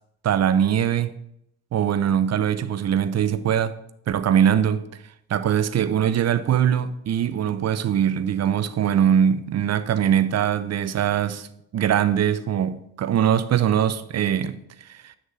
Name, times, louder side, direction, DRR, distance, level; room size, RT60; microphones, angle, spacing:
voice 1, 0.2-1.1 1.7-3.8 4.1-4.9 5.3-11.5 11.7-14.6 14.9-15.1, right 9 dB, 35° right, 0.7 m, -22 dB
9.7 x 6.3 x 3.7 m
hypercardioid pair, 50°, 45 cm